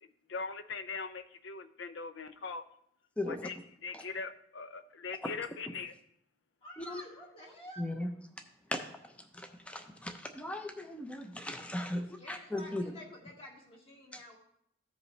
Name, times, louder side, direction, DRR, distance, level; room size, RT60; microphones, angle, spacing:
voice 1, 0.3-2.6 3.3-5.9 7.2-7.3, left 4 dB, 65° left, 11 dB, 0.5 m, -41 dB
voice 2, 6.6-7.9 11.9-14.4, equal, 30° left, -2 dB, 1.8 m, -50 dB
voice 3, 7.8-8.1 8.7-8.8 9.3-12.0 12.3-12.8 14.1-14.4, left 1 dB, 5° left, 5 dB, 0.6 m, -37 dB
14.5 x 5.3 x 3.2 m, 0.73 s
head